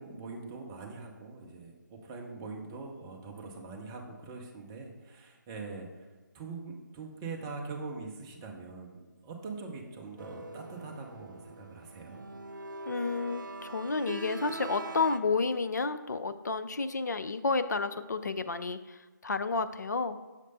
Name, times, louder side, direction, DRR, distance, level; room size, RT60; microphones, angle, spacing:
voice 1, 0.0-6.1 6.3-12.2, right 4 dB, 15° right, 1 dB, 0.6 m, -43 dB
sound 1, 10.2-15.2, right 3 dB, 75° right, 0.6 m, -43 dB
voice 2, 12.9-20.2, left 4 dB, 60° left, 11 dB, 0.4 m, -31 dB
6.6 x 3.2 x 5.2 m, 1.3 s
figure-of-eight pair, 155°, 11 cm